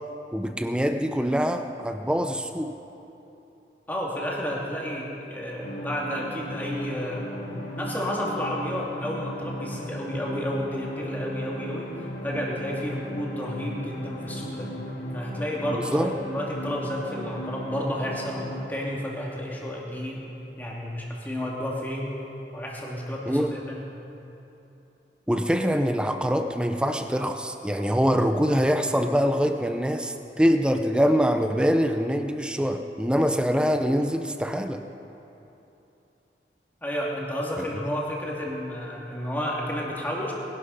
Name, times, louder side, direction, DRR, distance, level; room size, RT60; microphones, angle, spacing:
voice 1, 0.3-2.7 15.7-16.1 23.3-23.5 25.3-34.8 37.6-37.7, equal, 5° right, 6 dB, 0.6 m, -24 dB
voice 2, 3.9-7.4 7.8-14.7 15.1-22.2 22.5-23.9 36.8-40.3, equal, 10° left, -3 dB, 2.3 m, -31 dB
sound 1, 5.6-18.6, equal, 75° left, 3.2 m, -36 dB
20.5 x 11.5 x 5.6 m, 3.0 s
head